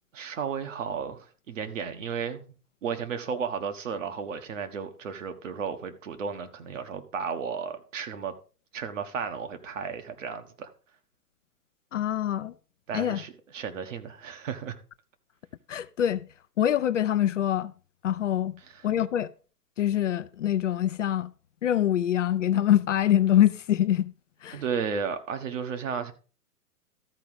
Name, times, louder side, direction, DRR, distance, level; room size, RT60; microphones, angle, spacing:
voice 1, 0.1-2.4 2.8-8.3 8.7-10.7 12.9-14.8 24.5-26.1, right 6 dB, 55° right, 1.4 m, -33 dB
voice 2, 11.9-12.5 12.9-13.2 15.7-16.2 16.6-17.7 18.0-18.6 18.8-19.3 19.8-21.3 21.6-24.1 24.4-24.6, left 11 dB, 55° left, 0.6 m, -24 dB
13.5 x 4.7 x 5.2 m
figure-of-eight pair, 115°, 46 cm